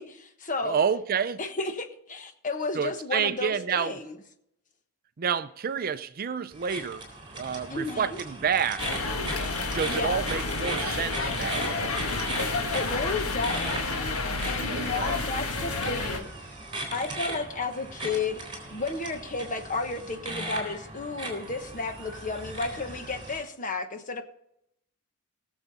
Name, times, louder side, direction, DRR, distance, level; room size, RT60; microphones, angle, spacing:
voice 1, 0.0-0.8 1.4-4.2 7.7-8.2 9.9-10.2 12.7-13.9 14.4-16.3 16.9-18.4 18.7-24.2, left 3 dB, 35° left, 1.1 m, -32 dB
voice 2, 0.6-1.4 2.7-4.0 5.2-7.0 7.3-8.9 9.6-11.9 14.7-15.1, right 7 dB, 40° right, 0.5 m, -29 dB
sound 1, 6.5-23.4, right 1 dB, 25° right, 3.7 m, -38 dB
sound 2, 8.8-16.2, left 3 dB, 80° left, 1.5 m, -30 dB
19.5 x 7.1 x 4.1 m
head